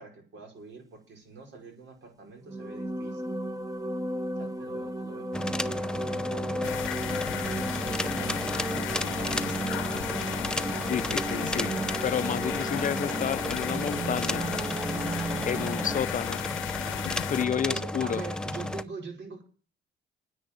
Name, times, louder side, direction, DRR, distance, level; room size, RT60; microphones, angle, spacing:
voice 1, 0.0-3.4 4.4-6.8 7.3-7.4 7.7-8.4 8.9-9.7 17.6-19.4, right 4 dB, 65° right, 5.0 m, -44 dB
sound 1, 2.4-16.1, right 2 dB, 15° right, 1.0 m, -34 dB
sound 2, 5.3-18.8, left 1 dB, 5° left, 0.7 m, -34 dB
sound 3, 6.6-17.5, left 13 dB, 80° left, 0.7 m, -35 dB
voice 2, 10.8-11.7 12.0-14.5 15.5-16.4 17.3-18.2, left 8 dB, 40° left, 0.5 m, -30 dB
10.0 x 8.7 x 9.1 m
cardioid pair, 90°, 20 cm